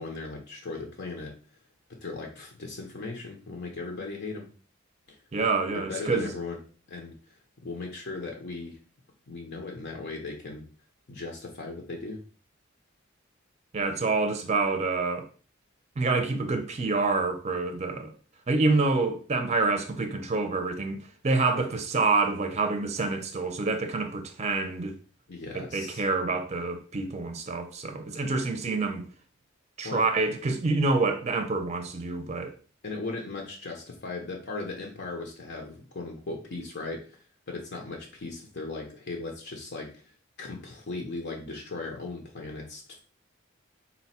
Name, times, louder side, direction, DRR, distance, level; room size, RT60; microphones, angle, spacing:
voice 1, 0.0-1.3 2.0-4.5 5.7-6.6 6.9-7.1 7.6-8.8 9.3-10.6 11.1-12.2 25.3-26.0 29.8-30.1 32.8-37.2 37.5-40.0 40.4-43.0, left 3 dB, 55° left, 0.7 m, -37 dB
voice 2, 5.3-6.3 13.7-15.3 16.0-18.1 18.5-21.0 21.2-24.9 25.5-29.0 29.8-32.6, right 3 dB, 35° right, 0.5 m, -27 dB
4.1 x 2.2 x 4.2 m
head